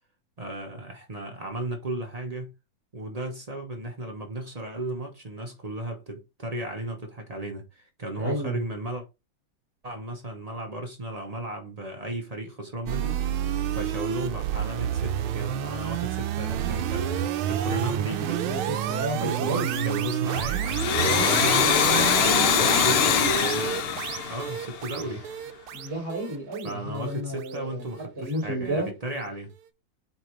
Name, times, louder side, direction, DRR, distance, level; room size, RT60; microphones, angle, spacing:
voice 1, 0.4-2.5 2.9-9.0 9.8-13.2 13.7-18.4 19.2-21.5 21.9-23.9 24.3-25.3 26.6-29.5, right 1 dB, 45° right, 0.4 m, -35 dB
voice 2, 8.2-8.6 18.4-20.0 25.7-27.8 28.2-28.9, right 1 dB, 10° right, 4.1 m, -31 dB
sound 1, 12.9-28.0, right 10 dB, 80° right, 1.5 m, -29 dB
Domestic sounds home sounds, 20.6-25.1, left 8 dB, 90° left, 1.7 m, -23 dB
8.2 x 3.7 x 3.1 m
omnidirectional pair, 2.3 m